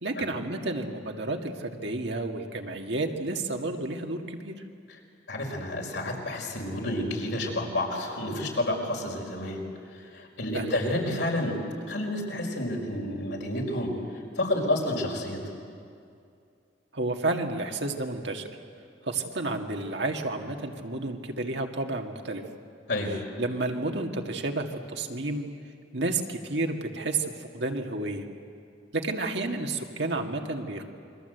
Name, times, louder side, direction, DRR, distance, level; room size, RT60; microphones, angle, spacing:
voice 1, 0.0-4.5 10.5-10.8 16.9-18.5 19.1-22.4 23.4-25.5 25.9-28.2 28.9-30.8, right 2 dB, 65° right, 3 dB, 2.0 m, -31 dB
voice 2, 5.3-9.6 9.9-11.6 11.9-15.4 22.9-23.2, left 1 dB, 75° left, 0 dB, 5.1 m, -30 dB
29.0 x 23.5 x 8.0 m, 2.4 s
head